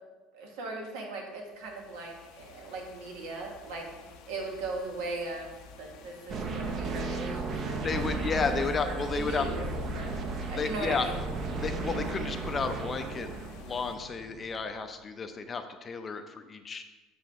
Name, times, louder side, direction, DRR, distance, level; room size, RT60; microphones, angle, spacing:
voice 1, 0.3-3.8 4.3-5.5 5.7-9.6 9.9-10.1 10.5-11.2, right 3 dB, 85° right, 1 dB, 1.7 m, -39 dB
sound 1, 1.3-14.0, left 7 dB, 75° left, 0.8 m, -53 dB
sound 2, 3.0-14.6, right 4 dB, 65° right, 1.0 m, -54 dB
sound 3, 6.3-14.5, right 3 dB, 40° right, 0.8 m, -35 dB
voice 2, 7.8-9.5 10.5-11.1 11.6-13.3 13.6-16.8, left 5 dB, 25° left, 7 dB, 0.6 m, -32 dB
7.9 x 3.4 x 5.9 m, 1.2 s
cardioid pair, 135°, 0 cm